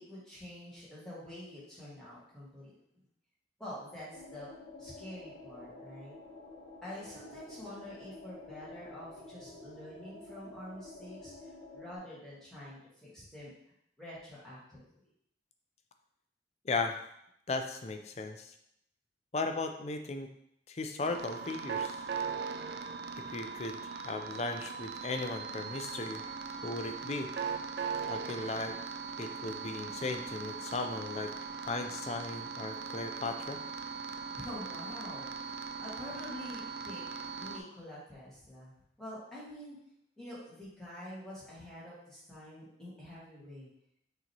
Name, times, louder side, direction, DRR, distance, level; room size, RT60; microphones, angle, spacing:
voice 1, 0.0-2.7 3.6-4.5 4.8-6.1 6.8-13.5 14.0-14.8 34.4-35.3 35.8-37.0 37.4-39.8 40.2-43.7, left 1 dB, 5° left, -9 dB, 1.6 m, -47 dB
sound 1, 4.1-12.0, left 2 dB, 65° left, 0.9 m, -50 dB
voice 2, 16.6-17.0 17.5-18.5 19.3-20.3 20.7-22.1 23.3-26.2 26.6-27.3 28.1-28.8 29.2-31.3 31.6-33.6, left 3 dB, 35° left, 5 dB, 0.4 m, -36 dB
sound 2, 21.0-37.6, right 5 dB, 65° right, 0.3 m, -40 dB
6.2 x 3.0 x 2.9 m, 0.75 s
head